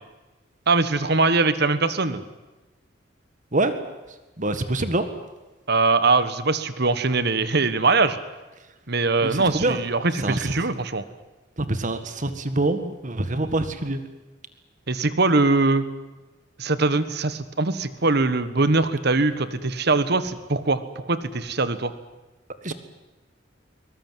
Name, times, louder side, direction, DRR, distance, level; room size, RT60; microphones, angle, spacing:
voice 1, 0.7-2.2 5.7-8.2 8.9-11.0 14.9-15.8 16.6-21.9, right 3 dB, 55° right, 13 dB, 1.4 m, -22 dB
voice 2, 4.4-5.1 9.2-9.8 10.2-10.5 11.6-14.0 22.6-22.7, right 2 dB, 40° right, 10 dB, 1.7 m, -25 dB
23.5 x 19.5 x 9.3 m, 1.1 s
head